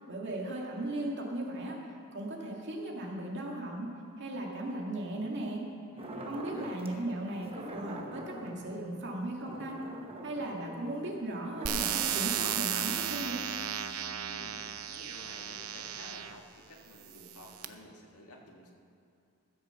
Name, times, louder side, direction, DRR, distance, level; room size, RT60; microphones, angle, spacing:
voice 1, 0.1-1.8 2.1-3.9 4.2-5.6 6.2-9.8 10.2-13.4, right 1 dB, 55° right, -1 dB, 2.1 m, -37 dB
voice 2, 5.9-7.3 14.3-18.7, left 1 dB, 85° left, 0 dB, 1.8 m, -52 dB
sound 1, 6.0-7.0 7.4-12.7, right 1 dB, 25° right, 1.0 m, -45 dB
sound 2, 11.7-16.4 17.1-17.7, right 9 dB, 75° right, 0.7 m, -34 dB
15.0 x 6.6 x 7.0 m, 2.6 s
head